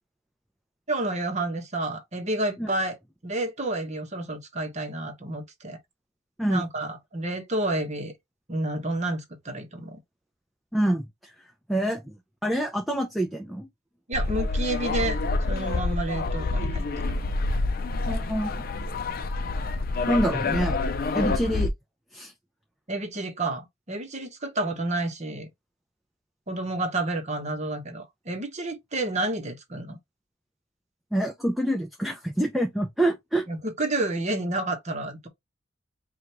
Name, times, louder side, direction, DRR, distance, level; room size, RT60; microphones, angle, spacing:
voice 1, 0.9-3.0 3.2-5.8 6.5-8.1 8.5-10.0 14.1-15.2 15.5-17.0 22.9-25.5 26.5-30.0 33.5-35.3, right 2 dB, 35° right, 1.1 m, -30 dB
voice 2, 10.7-11.1 11.7-12.1 12.4-13.7 18.1-18.6 20.1-20.8 21.1-21.7 22.1-22.3 31.1-33.4, right 1 dB, ahead, 0.6 m, -26 dB
sound 1, 14.1-21.7, left 3 dB, 45° left, 0.5 m, -27 dB
5.0 x 2.4 x 2.9 m
head